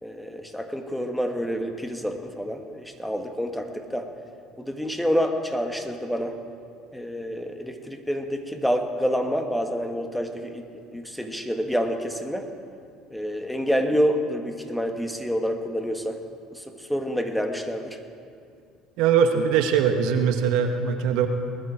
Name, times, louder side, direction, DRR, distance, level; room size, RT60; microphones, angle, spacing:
voice 1, 0.0-4.1 4.6-6.4 6.9-12.5 13.1-16.2 16.5-18.0, equal, 5° left, 5 dB, 1.7 m, -28 dB
voice 2, 19.0-21.3, right 7 dB, 65° right, 6 dB, 1.1 m, -21 dB
20.0 x 11.5 x 4.9 m, 2.4 s
hypercardioid pair, 60°, 0 cm